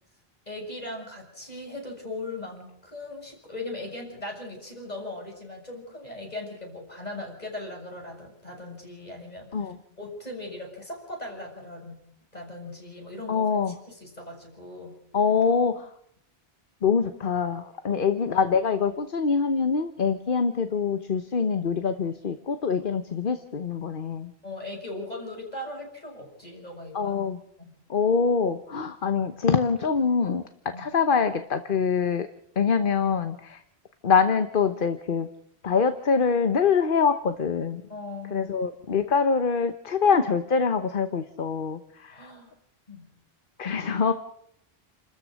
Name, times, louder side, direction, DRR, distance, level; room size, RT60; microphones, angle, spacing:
voice 1, 0.5-12.0 12.3-15.0 17.9-18.1 24.4-27.3 27.6-27.7 30.7-30.9 37.9-38.5 42.1-42.5 42.9-43.1, left 2 dB, 40° left, 0 dB, 7.1 m, -39 dB
voice 2, 13.3-13.7 15.1-15.9 16.8-24.3 26.9-27.4 27.9-30.4 30.8-32.3 32.6-33.6 34.0-35.3 35.6-37.8 38.3-42.3 43.6-44.1, left 5 dB, 55° left, 9 dB, 1.2 m, -24 dB
29.5 x 13.5 x 6.4 m, 0.73 s
omnidirectional pair, 1.0 m